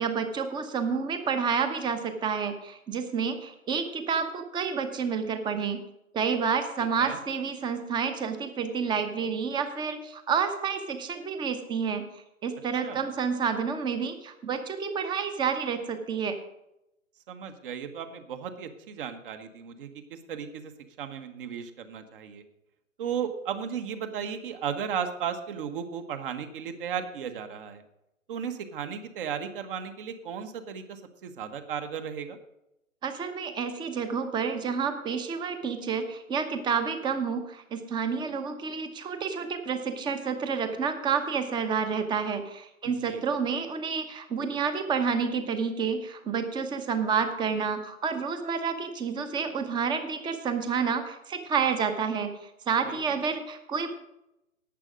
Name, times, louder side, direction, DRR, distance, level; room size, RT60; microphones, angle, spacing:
voice 1, 0.0-5.8 6.1-16.4 33.0-54.0, right 6 dB, 10° right, 8 dB, 0.9 m, -29 dB
voice 2, 6.8-7.2 12.8-13.0 17.3-20.7 21.0-22.4 23.0-27.8 28.3-32.4 42.8-43.2 52.8-53.2, right 7 dB, 40° right, 8 dB, 1.4 m, -35 dB
11.0 x 9.2 x 5.0 m, 0.86 s
figure-of-eight pair, 120°, 41 cm